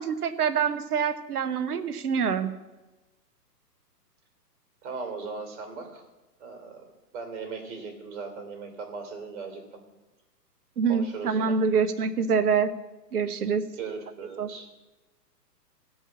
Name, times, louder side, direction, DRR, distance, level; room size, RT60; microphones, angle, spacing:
voice 1, 0.0-2.5 10.8-12.7 13.1-13.6 14.4-14.5, right 6 dB, 65° right, 11 dB, 1.1 m, -25 dB
voice 2, 4.8-6.0 6.4-6.9 7.1-9.6 10.9-11.5 13.8-14.7, right 4 dB, 45° right, 5 dB, 3.3 m, -38 dB
16.0 x 5.5 x 7.4 m, 1.1 s
figure-of-eight pair, 125°, 49 cm